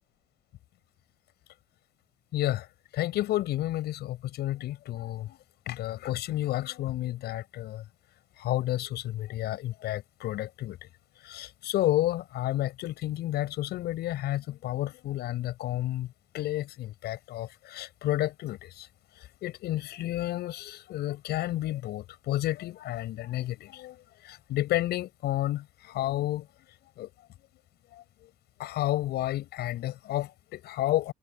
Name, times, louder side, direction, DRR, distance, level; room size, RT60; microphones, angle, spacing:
voice 1, 2.3-2.7 2.9-5.4 5.7-7.8 8.4-10.8 11.2-16.1 16.3-18.9 19.4-24.0 24.2-26.5 27.0-27.1 28.6-31.1, left 14 dB, 75° left, 7.8 m, -31 dB
cardioid pair, 110°, 17 cm